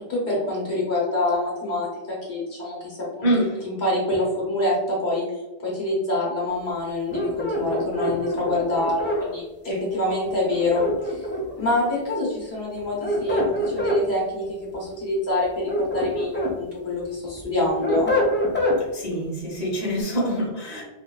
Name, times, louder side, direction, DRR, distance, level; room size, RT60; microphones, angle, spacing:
voice 1, 0.0-3.3 3.6-5.2 5.6-18.1, left 2 dB, 80° left, -5 dB, 1.5 m, -26 dB
voice 2, 3.2-3.6 9.7-9.9 18.9-20.8, equal, 40° left, -5 dB, 1.0 m, -25 dB
sound 1, 7.1-9.2 10.5-11.6 12.8-14.0 15.4-16.6 17.0-18.8, equal, 20° left, 0.4 m, -25 dB
3.3 x 2.6 x 2.3 m, 1.1 s
omnidirectional pair, 1.1 m